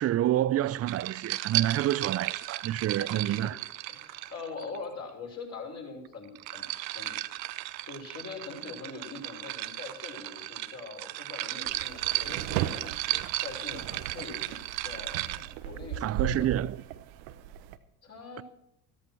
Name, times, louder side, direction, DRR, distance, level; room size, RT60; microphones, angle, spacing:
voice 1, 0.0-3.6 16.0-16.8, right 13 dB, 30° right, 0.5 m, -28 dB
sound 1, 0.9-4.8 6.1-15.5, right 17 dB, 85° right, 0.7 m, -35 dB
voice 2, 3.0-3.5 3.9-6.6 6.9-7.1 7.8-12.9 13.4-16.5 18.0-18.4, left 4 dB, 35° left, 5.8 m, -43 dB
sound 2, 11.7-17.8, right 10 dB, 70° right, 1.1 m, -37 dB
14.0 x 13.5 x 4.6 m
hypercardioid pair, 85°, 48 cm